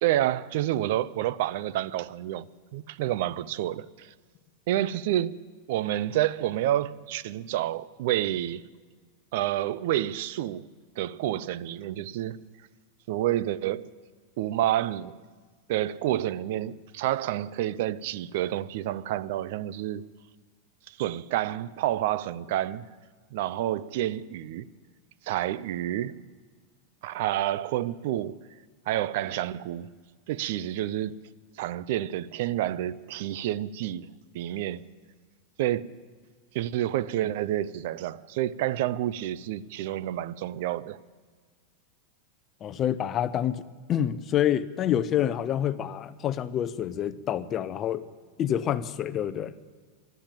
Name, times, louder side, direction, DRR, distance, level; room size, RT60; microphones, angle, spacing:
voice 1, 0.0-2.5 2.7-4.1 4.7-5.4 5.7-8.6 9.3-10.7 11.0-12.4 13.1-13.9 14.4-15.1 15.7-20.0 20.9-22.9 23.3-24.7 25.2-26.2 27.0-28.4 28.9-29.9 30.3-31.2 31.6-34.9 35.6-35.9 36.5-41.0, right 13 dB, 65° right, 0.5 m, -29 dB
voice 2, 42.6-43.6 43.9-48.0 48.4-49.5, left 10 dB, 30° left, 0.6 m, -27 dB
12.0 x 11.5 x 9.0 m
supercardioid pair, 130°, 0 cm